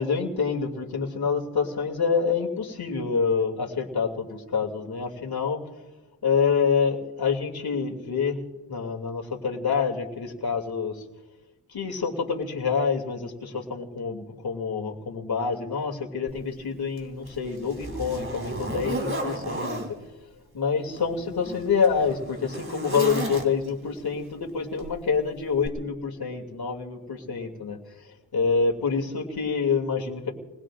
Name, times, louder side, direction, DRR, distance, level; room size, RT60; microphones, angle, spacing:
voice 1, 0.0-5.6 6.2-8.4 8.7-11.0 11.7-19.8 20.5-30.3, left 5 dB, 55° left, 1 dB, 2.7 m, -27 dB
Zipper (clothing), 16.3-16.4 17.0-19.9 20.9-23.8 24.8-25.0 25.6-25.7, right 1 dB, 30° right, 2.8 m, -33 dB
29.0 x 20.0 x 2.5 m, 1.1 s
cardioid pair, 70°, 44 cm